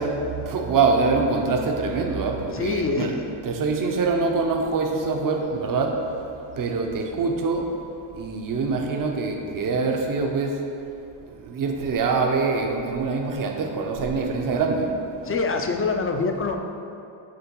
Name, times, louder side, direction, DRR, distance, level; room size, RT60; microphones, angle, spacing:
voice 1, 0.0-3.2 3.4-5.9 6.6-7.6 8.1-10.5 11.5-14.9, right 4 dB, 45° right, 2 dB, 0.8 m, -24 dB
voice 2, 2.5-3.2 15.2-16.6, left 4 dB, 30° left, 4 dB, 0.5 m, -25 dB
6.9 x 3.4 x 4.6 m, 2.7 s
cardioid pair, 90°, 47 cm